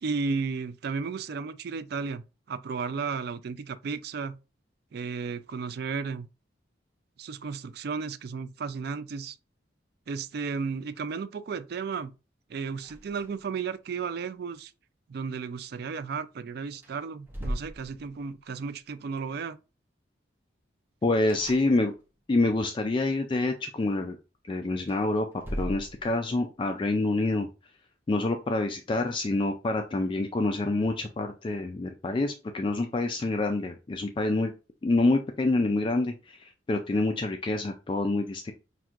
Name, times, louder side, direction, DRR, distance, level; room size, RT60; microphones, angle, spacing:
voice 1, 0.0-4.4 4.9-6.3 7.2-9.4 10.1-12.1 12.5-14.7 15.1-19.6, right 5 dB, 55° right, 0.4 m, -34 dB
sound 1, 12.8-13.6 13.9-14.0 16.2-16.3 16.7-18.5 21.2-22.2 24.7-26.4, equal, 10° right, 0.8 m, -39 dB
voice 2, 21.0-21.9 22.3-24.2 24.4-25.3 25.5-27.5 28.1-34.5 34.8-38.5, left 2 dB, 25° left, 0.3 m, -27 dB
5.8 x 2.6 x 2.4 m
head